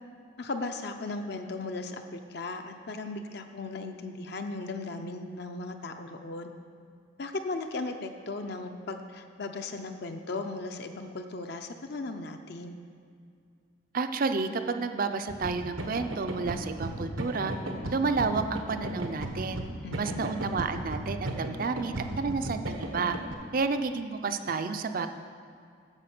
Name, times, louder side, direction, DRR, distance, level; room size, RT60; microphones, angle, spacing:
voice 1, 0.4-6.5 7.2-12.8 19.8-20.3, left 3 dB, 55° left, 6 dB, 0.6 m, -37 dB
voice 2, 13.9-17.5 17.9-19.6 19.9-23.2 23.5-25.1, right 4 dB, 45° right, 8 dB, 0.5 m, -30 dB
sound 1, 15.3-23.3, right 1 dB, 90° right, 1.3 m, -35 dB
9.9 x 7.1 x 6.0 m, 2.3 s
head